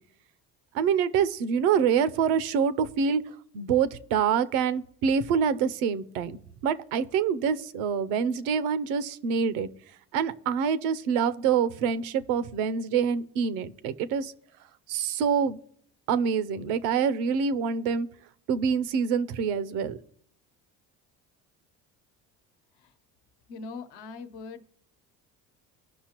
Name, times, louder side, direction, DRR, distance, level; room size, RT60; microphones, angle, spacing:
voice 1, 0.7-3.2 3.5-9.7 10.1-14.3 14.9-15.6 16.1-18.1 18.5-20.0, right 7 dB, 85° right, 16 dB, 0.7 m, -26 dB
voice 2, 23.5-24.7, left 4 dB, 70° left, 8 dB, 1.0 m, -41 dB
16.5 x 5.6 x 2.9 m, 0.64 s
supercardioid pair, 75°, 40 cm